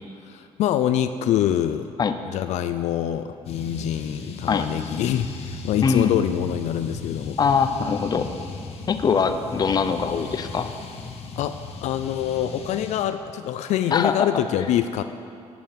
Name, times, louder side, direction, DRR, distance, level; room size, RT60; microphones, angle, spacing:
voice 1, 0.2-1.9 2.3-7.4 11.4-11.5 11.8-15.0, left 11 dB, 75° left, 10 dB, 0.4 m, -25 dB
sound 1, 3.4-13.0, left 4 dB, 60° left, 1.2 m, -37 dB
voice 2, 5.8-6.1 7.4-8.3 8.9-10.7 13.9-14.3, left 6 dB, 35° left, 8 dB, 0.7 m, -22 dB
9.4 x 8.7 x 7.4 m, 2.4 s
cardioid pair, 130°, 12 cm